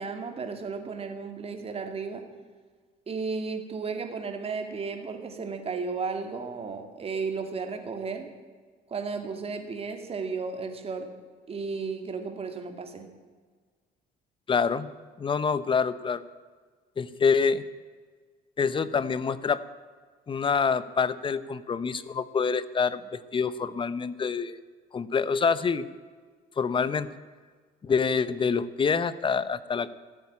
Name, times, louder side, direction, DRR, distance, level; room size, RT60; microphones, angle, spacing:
voice 1, 0.0-2.2 3.1-8.3 8.9-11.1 11.5-13.1, right 4 dB, 35° right, 6 dB, 2.3 m, -34 dB
voice 2, 14.5-14.9 15.2-16.2 17.0-17.7 18.6-19.6 20.3-24.6 24.9-25.9 26.6-27.1 27.8-29.9, left 5 dB, 30° left, 16 dB, 0.8 m, -26 dB
14.5 x 8.6 x 9.8 m, 1.5 s
cardioid pair, 110°, 17 cm